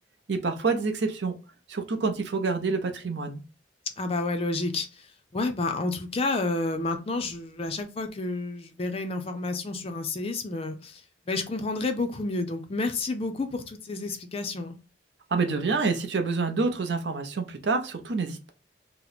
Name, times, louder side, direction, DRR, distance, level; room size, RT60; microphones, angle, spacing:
voice 1, 0.3-1.3 1.7-3.4 15.3-18.5, right 4 dB, 65° right, 0.6 m, -27 dB
voice 2, 4.0-4.9 5.3-11.0 11.3-14.8, left 2 dB, 30° left, 0.4 m, -30 dB
2.9 x 2.0 x 3.9 m
head